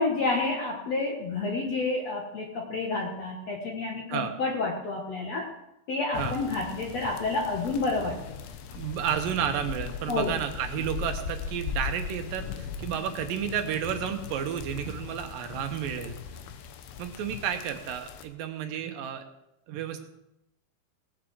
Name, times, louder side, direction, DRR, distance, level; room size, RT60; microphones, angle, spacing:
voice 1, 0.0-5.5 5.9-8.2 10.1-10.3, left 3 dB, 55° left, 0 dB, 2.1 m, -29 dB
sound 1, 6.1-18.3, left 7 dB, 90° left, 3.2 m, -39 dB
voice 2, 8.8-16.2 17.0-19.2 19.7-20.0, right 9 dB, 70° right, 6 dB, 2.4 m, -31 dB
17.5 x 7.4 x 7.5 m, 0.86 s
omnidirectional pair, 4.7 m